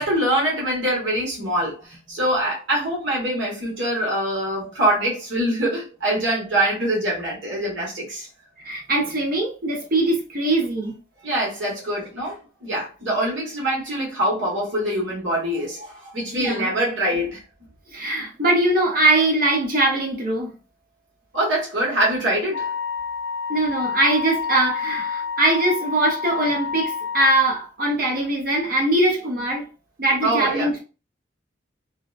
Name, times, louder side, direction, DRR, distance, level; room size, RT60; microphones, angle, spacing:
voice 1, 0.0-8.3 11.2-17.4 21.3-22.7 30.2-30.7, right 1 dB, 75° right, 1.3 m, -24 dB
voice 2, 8.6-11.0 16.3-16.7 17.9-20.5 23.5-29.7 30.0-30.8, right 1 dB, 45° right, 0.7 m, -21 dB
Wind instrument woodwind instrument, 22.5-27.4, left 6 dB, 65° left, 0.3 m, -28 dB
2.7 x 2.1 x 2.4 m
head